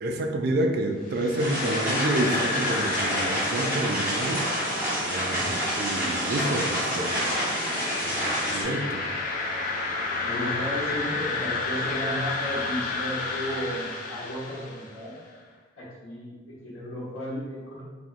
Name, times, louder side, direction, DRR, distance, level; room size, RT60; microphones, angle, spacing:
voice 1, 0.0-4.5 5.0-7.4 8.0-8.2 8.5-9.1, right 1 dB, 50° right, 3 dB, 0.3 m, -29 dB
sound 1, 1.0-15.0, left 3 dB, 40° left, 0.4 m, -32 dB
sound 2, 1.4-8.6, equal, 10° right, 1.2 m, -28 dB
voice 2, 5.3-5.7 10.2-15.2 15.8-17.8, equal, 80° left, -7 dB, 1.4 m, -34 dB
4.2 x 2.8 x 2.4 m, 1.4 s
head